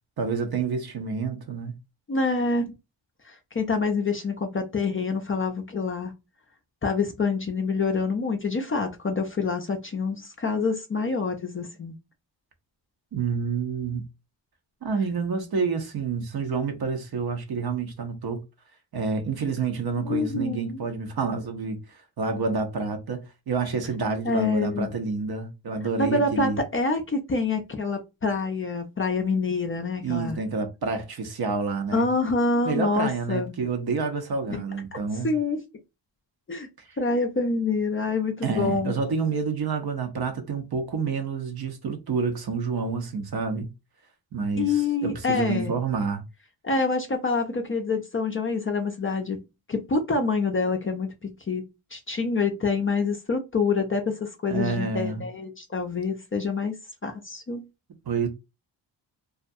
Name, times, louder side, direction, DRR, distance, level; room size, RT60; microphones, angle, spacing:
voice 1, 0.2-1.7 13.1-14.1 14.8-18.4 18.9-26.6 30.0-32.1 32.6-35.3 38.4-43.7 44.3-46.2 54.5-55.2 58.1-58.3, right 4 dB, 50° right, 0.8 m, -28 dB
voice 2, 2.1-2.7 3.3-6.1 6.8-11.9 20.0-20.8 24.2-24.9 26.0-30.4 31.9-33.5 34.5-34.6 34.9-35.0 35.2-35.6 36.5-36.7 37.0-39.0 44.6-45.7 46.6-51.6 51.9-56.7 57.0-57.6, left 4 dB, 30° left, 0.5 m, -26 dB
2.4 x 2.2 x 2.6 m
cardioid pair, 70°, 48 cm